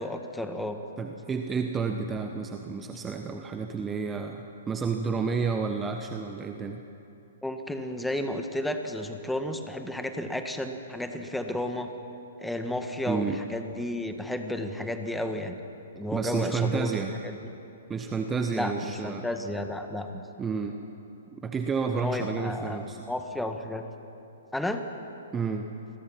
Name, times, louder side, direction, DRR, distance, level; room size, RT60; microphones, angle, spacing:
voice 1, 0.0-0.8 7.4-11.9 12.4-15.6 16.0-16.9 17.2-17.4 18.5-20.1 21.9-23.8 24.5-24.8, left 1 dB, 5° left, 6 dB, 1.7 m, -32 dB
voice 2, 1.0-6.8 13.1-13.4 16.1-17.1 17.9-19.2 20.1-20.8 21.3-23.0 25.3-25.7, right 5 dB, 15° right, 5 dB, 1.1 m, -30 dB
29.0 x 21.5 x 6.0 m, 2.8 s
figure-of-eight pair, 120°, 0 cm